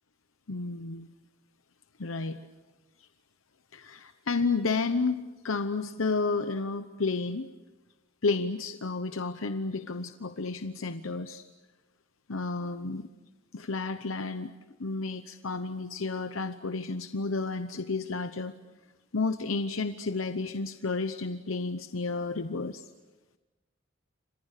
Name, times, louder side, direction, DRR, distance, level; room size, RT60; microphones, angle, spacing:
voice 1, 0.5-1.1 2.0-2.4 3.7-7.5 8.2-11.4 12.3-13.1 13.5-14.5 14.8-18.5 19.1-22.8, left 3 dB, 80° left, 9 dB, 0.9 m, -31 dB
29.5 x 26.5 x 6.7 m, 1.2 s
head